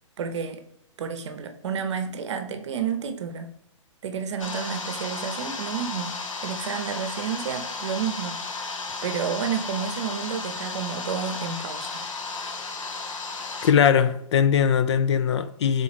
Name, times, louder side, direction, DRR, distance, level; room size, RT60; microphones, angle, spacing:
voice 1, 0.2-0.6 1.0-3.5 4.0-8.5 9.0-12.0, right 7 dB, 60° right, 0.7 m, -30 dB
sound 1, 4.4-13.7, left 4 dB, 80° left, 0.8 m, -34 dB
voice 2, 13.6-15.8, left 8 dB, 60° left, 0.4 m, -20 dB
3.8 x 3.0 x 4.1 m
hypercardioid pair, 155°, 17 cm